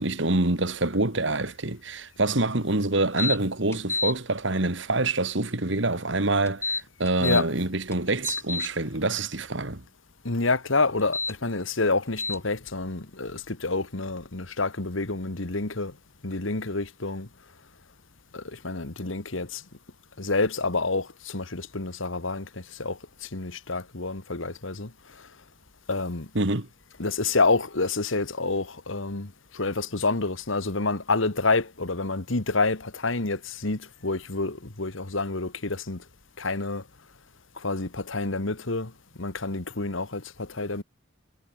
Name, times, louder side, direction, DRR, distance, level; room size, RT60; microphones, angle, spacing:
voice 1, 0.0-9.8 26.3-26.7, right 2 dB, 65° right, 2.4 m, -26 dB
sound 1, 3.2-3.4 3.7-4.1 6.5-7.4 7.9-8.7 11.0-11.3 12.2-12.4, left 3 dB, 15° left, 3.5 m, -29 dB
voice 2, 10.2-15.9 16.2-17.3 18.3-19.6 20.2-24.9 25.2-25.3 25.9-26.3 27.0-36.0 36.4-36.8 37.6-38.9 39.2-40.8, left 3 dB, 75° left, 2.0 m, -28 dB
head